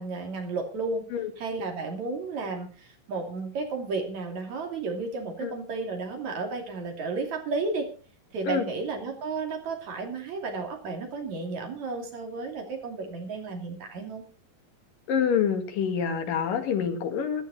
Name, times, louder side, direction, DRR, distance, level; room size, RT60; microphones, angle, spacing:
voice 1, 0.0-1.0 1.4-7.9 8.3-14.2, right 3 dB, 60° right, 3 dB, 4.0 m, -33 dB
voice 2, 15.1-17.5, left 7 dB, 90° left, 6 dB, 3.6 m, -27 dB
14.5 x 13.5 x 4.2 m, 0.36 s
omnidirectional pair, 3.8 m